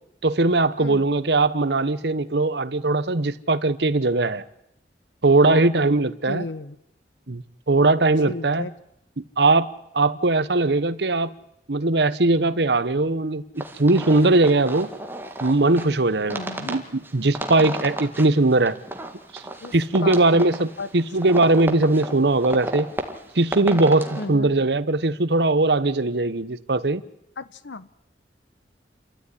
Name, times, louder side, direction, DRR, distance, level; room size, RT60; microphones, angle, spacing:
voice 1, 0.2-4.4 5.2-6.4 7.3-8.7 9.4-9.7 9.9-11.3 11.7-14.9 15.4-18.8 19.3-19.4 19.7-22.9 23.3-27.0, right 2 dB, 65° right, 1.0 m, -20 dB
voice 2, 6.3-6.8 8.3-8.7 16.3-16.7 18.0-18.1 19.6-19.7 20.0-20.2 20.8-20.9 24.2-24.5 27.4-27.9, left 3 dB, 85° left, 0.9 m, -33 dB
sound 1, 13.6-24.3, right 1 dB, 10° right, 2.1 m, -33 dB
29.0 x 13.5 x 10.0 m
head